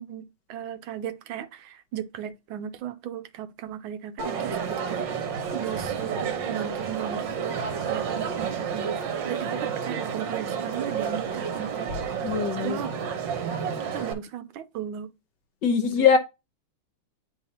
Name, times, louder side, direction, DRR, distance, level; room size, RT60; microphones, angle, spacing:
voice 1, 0.0-5.1 5.5-9.0 9.3-13.0 13.9-15.1 15.9-16.1, right 10 dB, 80° right, 1.4 m, -36 dB
Crowd, 4.2-14.1, right 7 dB, 65° right, 1.6 m, -30 dB
voice 2, 12.2-12.8 15.6-16.2, left 6 dB, 65° left, 1.4 m, -21 dB
9.8 x 3.6 x 2.8 m
omnidirectional pair, 2.2 m